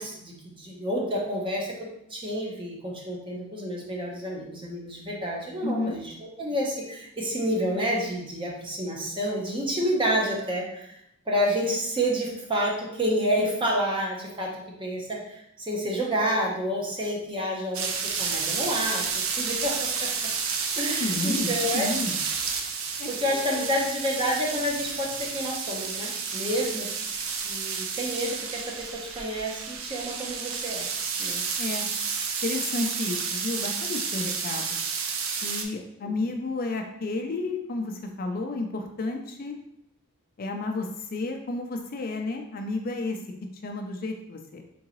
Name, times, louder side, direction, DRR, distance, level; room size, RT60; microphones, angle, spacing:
voice 1, 0.0-1.7 2.1-11.0 11.3-20.1 20.8-21.8 23.1-26.9 27.4-30.9 31.2-31.4 36.0-36.1, equal, 25° right, -2 dB, 0.8 m, -29 dB
voice 2, 5.6-6.0 21.0-22.2 23.0-23.7 31.6-31.9 32.4-34.8 35.4-39.6 40.4-44.6, left 2 dB, 45° left, 4 dB, 0.4 m, -32 dB
sound 1, 17.7-35.6, right 5 dB, 75° right, 0.5 m, -31 dB
3.8 x 3.6 x 3.0 m, 0.79 s
head